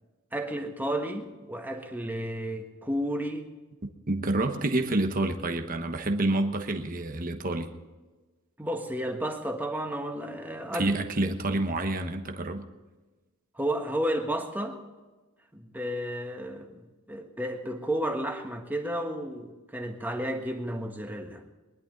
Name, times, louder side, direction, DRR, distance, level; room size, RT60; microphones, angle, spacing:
voice 1, 0.3-3.5 8.6-10.9 11.2-11.3 13.5-14.8 15.5-21.4, right 1 dB, 10° right, 4 dB, 1.4 m, -32 dB
voice 2, 3.8-7.7 10.7-12.6, right 2 dB, 40° right, 6 dB, 1.1 m, -28 dB
22.5 x 11.5 x 3.9 m, 1.2 s
head